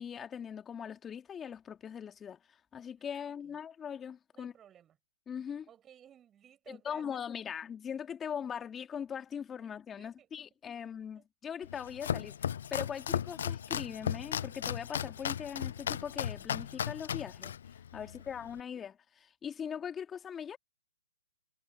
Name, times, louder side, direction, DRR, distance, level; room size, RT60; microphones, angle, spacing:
voice 1, 0.0-4.5 5.3-5.7 6.7-12.4 12.7-17.5 17.9-20.6, left 8 dB, 15° left, 2.7 m, -41 dB
voice 2, 3.2-3.6 4.3-5.0 5.6-7.1 9.6-10.5 10.7-10.9 11.1-11.3 18.0-18.4, right 10 dB, 15° right, 7.5 m, -59 dB
Domestic sounds home sounds, 11.6-18.6, left 9 dB, 60° left, 0.4 m, -36 dB
hypercardioid pair, 140°, 0 cm